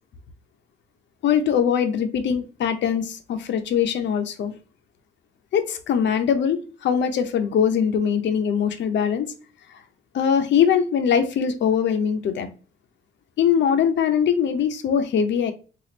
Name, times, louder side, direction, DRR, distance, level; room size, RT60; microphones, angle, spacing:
voice 1, 1.2-4.5 5.5-9.3 10.1-12.5 13.4-15.5, left 7 dB, 65° left, 0.7 m, -22 dB
4.2 x 2.5 x 2.9 m
cardioid pair, 90°, 20 cm